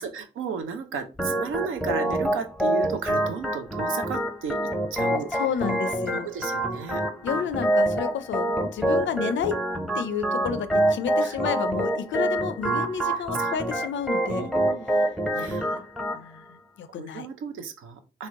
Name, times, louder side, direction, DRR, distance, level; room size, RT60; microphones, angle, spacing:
voice 1, 0.0-5.4 6.1-7.5 11.2-11.4 13.4-13.5 14.3-14.9 15.3-15.6 17.0-18.3, right 5 dB, 80° right, 0.5 m, -34 dB
Organ, 1.2-16.2, right 1 dB, ahead, 0.6 m, -26 dB
voice 2, 5.3-6.3 7.2-9.6 10.0-14.5 15.4-15.8 16.1-17.3, left 7 dB, 70° left, 0.4 m, -31 dB
2.9 x 2.0 x 3.6 m
supercardioid pair, 40°, 20 cm